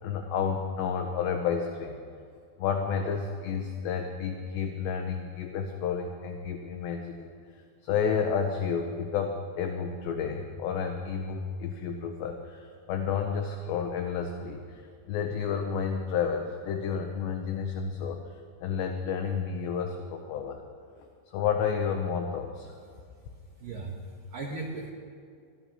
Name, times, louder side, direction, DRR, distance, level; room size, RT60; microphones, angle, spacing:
voice 1, 0.0-2.0 2.6-14.8 15.1-20.6 21.0-22.8, left 6 dB, 80° left, 4 dB, 2.6 m, -31 dB
voice 2, 23.5-24.9, right 3 dB, 90° right, -2 dB, 1.9 m, -38 dB
23.0 x 13.5 x 2.9 m, 2.2 s
omnidirectional pair, 5.5 m